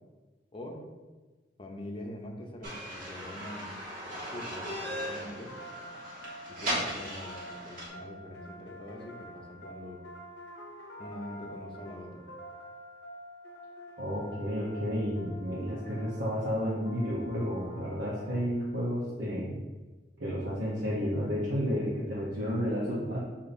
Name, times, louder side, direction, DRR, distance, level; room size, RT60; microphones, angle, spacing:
voice 1, 0.5-0.8 1.6-3.7 4.1-5.5 6.5-10.0 11.0-12.2, left 1 dB, 30° left, 0 dB, 0.6 m, -44 dB
sound 1, 2.6-7.9, equal, 50° right, 1.4 m, -37 dB
sound 2, 4.9-18.8, equal, 90° left, 0.6 m, -47 dB
voice 2, 14.0-19.6 20.2-23.2, equal, 90° right, -6 dB, 0.9 m, -31 dB
6.7 x 2.8 x 2.6 m, 1.3 s
head